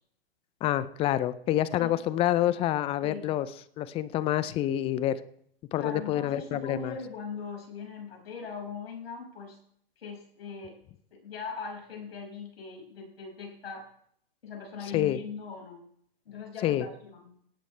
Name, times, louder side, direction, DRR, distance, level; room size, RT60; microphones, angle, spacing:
voice 1, 0.6-3.5 3.8-5.2 5.7-6.9 14.9-15.2 16.6-16.9, left 12 dB, 20° left, 16 dB, 0.5 m, -27 dB
voice 2, 5.8-9.6 10.0-10.8 11.1-13.9 14.4-15.8 16.2-17.3, left 5 dB, 75° left, 1 dB, 5.8 m, -40 dB
18.0 x 10.0 x 3.3 m, 0.66 s
hypercardioid pair, 125°, 31 cm